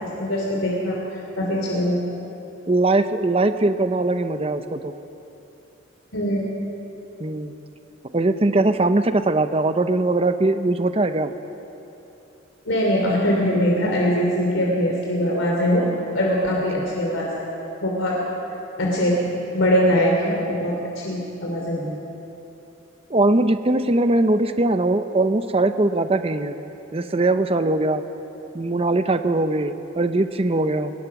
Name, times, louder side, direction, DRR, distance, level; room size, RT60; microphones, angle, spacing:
voice 1, 0.2-1.0 1.4-2.0 6.1-6.4 12.7-15.9 16.1-17.3 17.8-18.2 18.8-19.2 19.5-21.8, equal, 90° left, -2 dB, 3.5 m, -22 dB
voice 2, 2.7-4.9 7.2-7.5 8.1-11.3 16.8-16.9 21.8-22.0 23.1-26.6 26.9-28.0 28.5-30.9, right 2 dB, 30° right, 9 dB, 0.8 m, -21 dB
23.5 x 20.5 x 6.0 m, 3.0 s
head